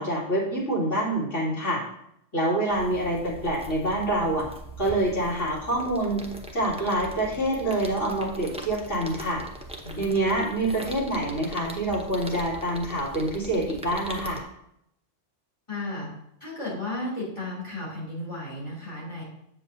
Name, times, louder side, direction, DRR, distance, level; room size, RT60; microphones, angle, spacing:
voice 1, 0.0-1.8 2.3-4.5 4.8-6.2 6.5-9.4 10.0-14.4, right 1 dB, 85° left, -7 dB, 3.0 m, -26 dB
sound 1, 2.7-14.4, right 1 dB, 5° right, 0.6 m, -41 dB
voice 2, 15.7-16.1 16.4-19.2, left 2 dB, 25° left, -6 dB, 3.2 m, -34 dB
8.0 x 7.4 x 2.7 m, 0.77 s
omnidirectional pair, 1.2 m